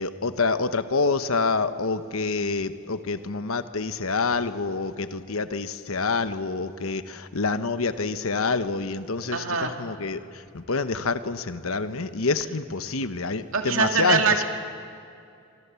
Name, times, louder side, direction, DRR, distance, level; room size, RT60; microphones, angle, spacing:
voice 1, 0.0-14.4, left 4 dB, 85° left, 11 dB, 1.1 m, -27 dB
voice 2, 9.3-9.7 13.5-14.4, right 5 dB, 75° right, 4 dB, 2.3 m, -23 dB
25.5 x 25.0 x 7.0 m, 2.4 s
head